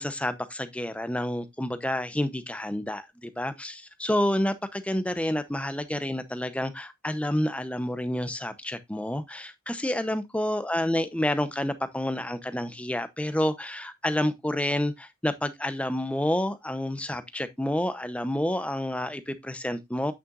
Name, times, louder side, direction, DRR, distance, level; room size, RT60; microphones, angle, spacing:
voice 1, 0.0-20.1, left 1 dB, 5° left, 0.6 m, -29 dB
8.7 x 6.7 x 2.4 m
head